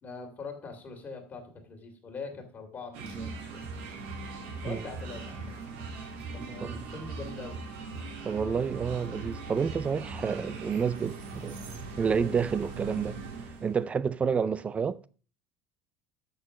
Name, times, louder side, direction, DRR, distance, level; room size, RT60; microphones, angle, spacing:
voice 1, 0.0-3.7 4.6-5.5 6.3-7.6, left 4 dB, 30° left, 2.3 m, -42 dB
sound 1, 2.9-13.8, right 3 dB, 85° right, 2.3 m, -40 dB
voice 2, 8.2-11.6 12.0-13.2 13.6-15.0, right 6 dB, 20° right, 0.5 m, -29 dB
6.9 x 6.7 x 6.2 m
supercardioid pair, 125°, 6 cm